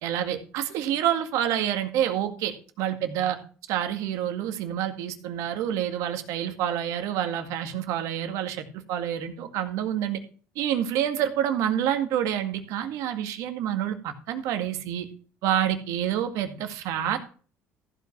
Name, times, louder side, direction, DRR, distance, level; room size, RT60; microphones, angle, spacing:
voice 1, 0.0-3.4 3.7-10.2 10.6-15.1 15.4-17.2, right 10 dB, 80° right, 7 dB, 2.0 m, -28 dB
14.5 x 5.4 x 6.0 m, 0.40 s
supercardioid pair, 80°, 6 cm